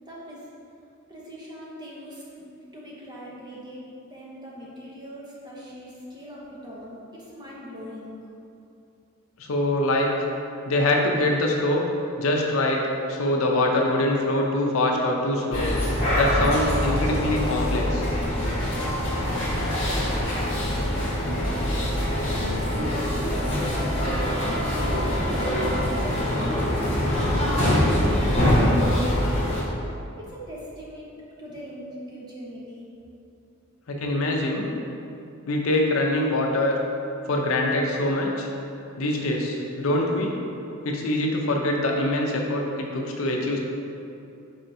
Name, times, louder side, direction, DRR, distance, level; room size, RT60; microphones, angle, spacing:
voice 1, 0.0-0.4 1.1-2.5 2.7-8.1 18.4-22.6 23.1-24.6 25.0-29.4 30.2-32.9, equal, 20° right, -5 dB, 0.7 m, -41 dB
voice 2, 9.4-10.1 10.6-11.9 12.2-15.7 16.1-18.1 33.9-34.7 35.5-36.8 37.2-38.5 39.0-40.3 40.8-43.6, left 1 dB, 85° left, 0 dB, 0.6 m, -24 dB
sound 1, 15.5-29.6, equal, 30° left, 1.0 m, -24 dB
4.4 x 4.3 x 2.6 m, 2.7 s
head